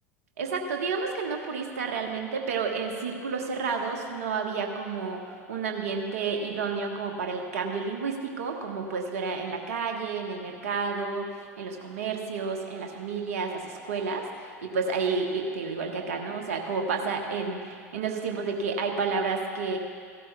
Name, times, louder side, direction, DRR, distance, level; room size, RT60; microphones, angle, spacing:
voice 1, 0.4-19.8, right 4 dB, 65° right, 3 dB, 1.2 m, -31 dB
16.5 x 12.5 x 2.3 m, 2.1 s
figure-of-eight pair, 75°, 9 cm